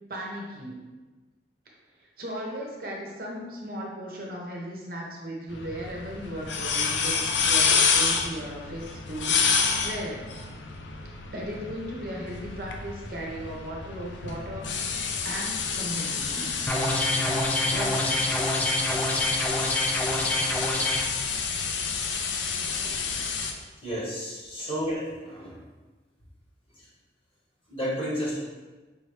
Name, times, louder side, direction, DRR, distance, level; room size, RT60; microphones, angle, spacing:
voice 1, 0.1-0.8 2.2-10.3 11.0-16.8 17.7-18.2 24.6-24.7, equal, 50° right, -2 dB, 0.8 m, -37 dB
sound 1, 5.5-23.5, left 5 dB, 85° left, 0.5 m, -29 dB
sound 2, 16.7-21.1, left 1 dB, 10° left, 0.3 m, -27 dB
voice 2, 23.8-25.6 27.7-28.4, equal, 30° left, -6 dB, 1.2 m, -31 dB
4.8 x 3.1 x 3.2 m, 1.2 s
head